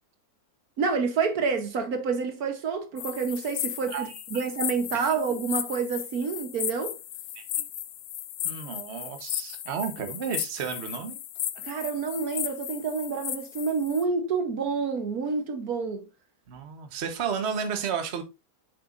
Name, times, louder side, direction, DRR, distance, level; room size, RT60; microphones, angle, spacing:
voice 1, 0.8-6.9 11.6-16.0, right 5 dB, 65° right, 1.4 m, -28 dB
sound 1, 3.0-14.0, left 12 dB, 85° left, 1.2 m, -35 dB
voice 2, 3.9-4.5 5.1-5.2 7.4-7.5 8.4-11.2 16.5-18.2, right 6 dB, 45° right, 1.3 m, -32 dB
8.1 x 6.6 x 2.5 m
omnidirectional pair, 1.7 m